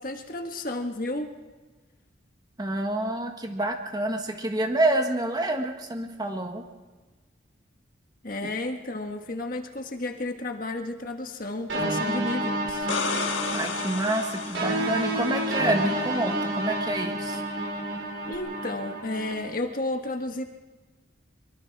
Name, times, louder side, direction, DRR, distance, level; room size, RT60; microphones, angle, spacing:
voice 1, 0.0-1.3 8.2-12.9 18.3-20.4, left 2 dB, 45° left, 4 dB, 1.5 m, -32 dB
voice 2, 2.6-6.6 13.5-17.4, right 1 dB, 20° right, 4 dB, 1.5 m, -28 dB
sound 1, 11.7-19.3, right 1 dB, 70° right, 4.3 m, -30 dB
sound 2, 12.7-15.5 18.3-18.4, left 5 dB, 80° left, 1.5 m, -33 dB
24.0 x 23.0 x 4.8 m, 1.3 s
head